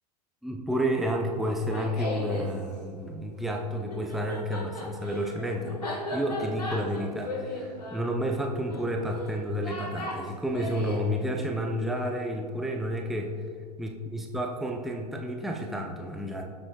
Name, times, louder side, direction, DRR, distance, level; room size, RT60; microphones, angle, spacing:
voice 1, 0.4-13.3 13.8-16.4, equal, ahead, 1 dB, 0.8 m, -30 dB
Laughter, 1.5-2.5 3.8-11.1, left 1 dB, 75° left, 1.8 m, -36 dB
18.0 x 7.7 x 2.4 m, 2.2 s
figure-of-eight pair, 95°, 21 cm